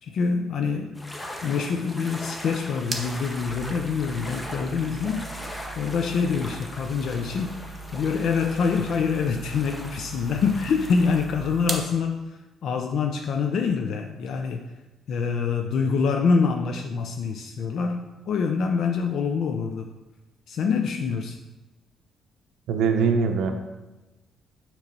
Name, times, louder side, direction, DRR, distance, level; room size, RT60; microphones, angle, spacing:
voice 1, 0.0-1.0 1.4-7.5 7.9-14.6 15.1-19.9 20.5-21.4, left 5 dB, 70° left, 4 dB, 0.4 m, -25 dB
sound 1, 1.0-11.3, left 1 dB, 15° left, 0.7 m, -40 dB
sound 2, 2.5-11.9, right 3 dB, 30° right, 1.0 m, -39 dB
voice 2, 22.7-23.5, right 5 dB, 85° right, 4 dB, 0.5 m, -22 dB
6.7 x 3.1 x 5.2 m, 1.1 s
cardioid pair, 90°, 0 cm